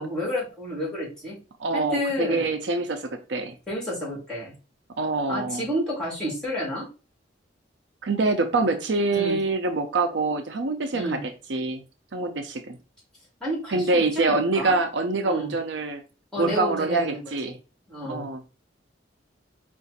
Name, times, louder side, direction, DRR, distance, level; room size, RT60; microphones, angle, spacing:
voice 1, 0.0-1.4 1.7-2.5 3.7-4.5 5.3-6.9 9.1-9.4 10.9-11.2 13.4-14.8 15.2-15.5 16.3-17.5 17.9-18.2, equal, 5° left, -6 dB, 2.7 m, -30 dB
voice 2, 1.6-3.5 5.0-5.7 8.0-11.8 12.1-12.8 13.7-16.0 16.4-17.5 18.1-18.4, right 3 dB, 70° right, 6 dB, 0.6 m, -25 dB
4.8 x 2.5 x 4.1 m, 0.32 s
head